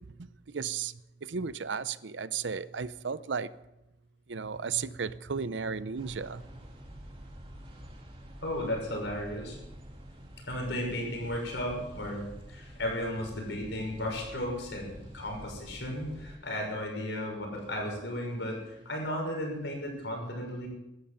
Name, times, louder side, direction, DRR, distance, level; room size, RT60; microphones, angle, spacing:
voice 1, 0.2-3.5 4.3-6.4, right 6 dB, 80° right, 0.7 m, -34 dB
sound 1, 5.9-16.4, equal, 30° right, 2.8 m, -48 dB
voice 2, 8.4-9.6 10.5-20.7, left 1 dB, 75° left, 6.1 m, -34 dB
17.0 x 13.0 x 5.7 m
head